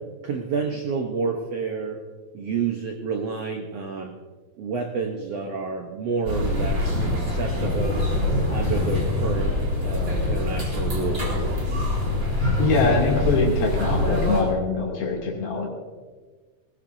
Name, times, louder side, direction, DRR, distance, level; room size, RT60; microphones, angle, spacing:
voice 1, 0.2-2.0 2.3-4.2 4.6-8.0 8.5-9.6 9.8-11.6, right 5 dB, 75° right, 3 dB, 1.4 m, -29 dB
sound 1, 6.3-14.4, left 2 dB, 30° right, 4.8 m, -24 dB
voice 2, 12.6-15.7, left 3 dB, 75° left, -1 dB, 4.5 m, -23 dB
20.0 x 19.0 x 2.7 m, 1.4 s
omnidirectional pair, 4.3 m